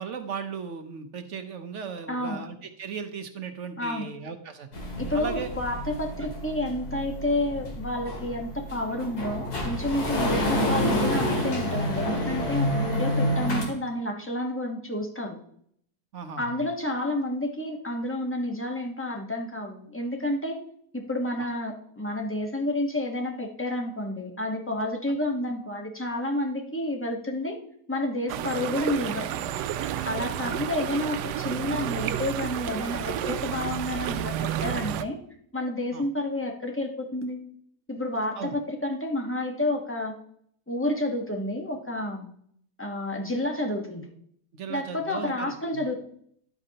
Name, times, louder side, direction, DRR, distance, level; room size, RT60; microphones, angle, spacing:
voice 1, 0.0-4.7 5.1-5.5 6.2-6.3 10.2-10.3 16.1-16.6 21.4-21.5 30.4-30.7 35.9-36.0 38.4-38.6 44.5-45.8, right 6 dB, 55° right, 8 dB, 1.0 m, -37 dB
voice 2, 2.1-2.4 3.8-4.1 5.0-15.4 16.4-20.6 20.9-27.6 27.9-29.6 30.0-35.2 35.5-37.4 37.9-40.1 40.7-42.3 42.8-44.1 44.7-46.0, left 1 dB, 10° left, 2 dB, 0.9 m, -30 dB
sound 1, 4.7-13.6, left 1 dB, 70° left, 2.5 m, -28 dB
sound 2, 28.3-35.0, right 11 dB, 80° right, 1.1 m, -31 dB
11.5 x 8.1 x 2.8 m, 0.65 s
omnidirectional pair, 1.7 m